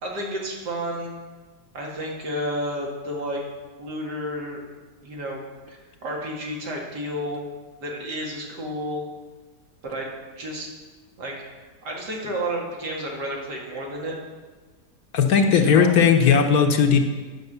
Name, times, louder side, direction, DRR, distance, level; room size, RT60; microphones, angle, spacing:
voice 1, 0.0-1.1 1.7-3.4 3.8-4.6 5.0-5.4 5.7-7.4 7.8-9.0 9.8-10.1 10.4-10.7 11.2-11.3 11.8-14.2 15.3-15.9, equal, 85° right, -1 dB, 2.5 m, -31 dB
voice 2, 15.1-17.0, left 6 dB, 65° left, 5 dB, 1.4 m, -17 dB
9.4 x 6.3 x 6.7 m, 1.3 s
omnidirectional pair, 1.8 m